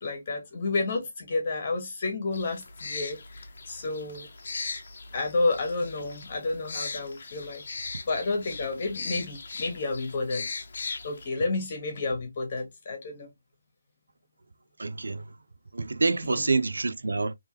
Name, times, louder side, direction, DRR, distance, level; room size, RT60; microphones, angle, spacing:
voice 1, 0.0-4.3 5.1-7.6 8.0-10.6 11.0-13.3 16.2-16.5, left 3 dB, 35° left, 1.3 m, -30 dB
sound 1, 2.3-11.3, left 4 dB, 50° left, 0.8 m, -39 dB
voice 2, 14.8-15.2 15.7-17.3, right 3 dB, 85° right, 0.5 m, -27 dB
3.5 x 3.0 x 3.0 m
hypercardioid pair, 170°, 0 cm